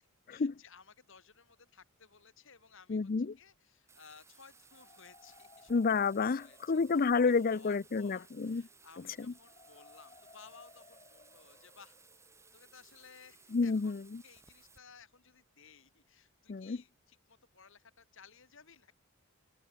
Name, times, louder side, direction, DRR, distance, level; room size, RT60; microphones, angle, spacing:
voice 1, 0.0-3.1 3.4-5.7 6.4-6.6 6.9-7.1 7.5-12.0 12.5-18.9, left 6 dB, 55° left, 2.5 m, -58 dB
voice 2, 2.9-3.4 5.7-8.6 13.5-14.2 16.5-16.8, left 4 dB, 40° left, 0.4 m, -30 dB
Bathtub (filling or washing), 3.9-14.8, right 4 dB, 10° right, 4.8 m, -62 dB
sound 1, 4.5-14.4, left 3 dB, 25° left, 1.8 m, -62 dB
head